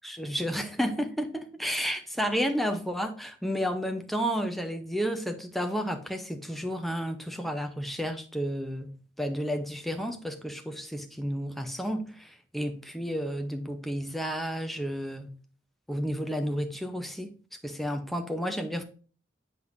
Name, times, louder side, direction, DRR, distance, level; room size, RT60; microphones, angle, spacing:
voice 1, 0.0-15.3 15.9-17.3 17.6-18.8, equal, ahead, 0.7 m, -31 dB
7.7 x 5.6 x 2.6 m
head